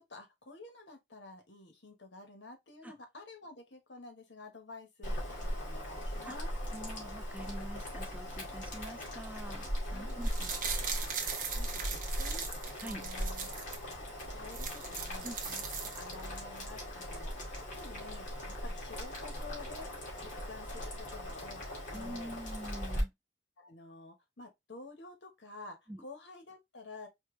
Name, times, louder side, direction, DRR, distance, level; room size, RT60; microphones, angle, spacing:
voice 1, 0.0-6.5 9.9-10.1 10.7-13.5 13.9-14.0 14.3-15.6 16.0-19.9 20.2-21.6 21.9-22.3 23.6-27.1, left 3 dB, 70° left, 1.5 m, -50 dB
Boiling, 5.0-23.0, equal, 45° left, 2.3 m, -39 dB
voice 2, 6.7-10.5 12.8-13.0 15.2-15.4 21.9-23.1 25.9-26.0, right 1 dB, 10° right, 0.4 m, -45 dB
sound 1, 10.1-13.8 14.2-14.3 14.5-16.4 16.7-16.8, right 6 dB, 45° right, 1.0 m, -39 dB
4.4 x 2.9 x 3.2 m
head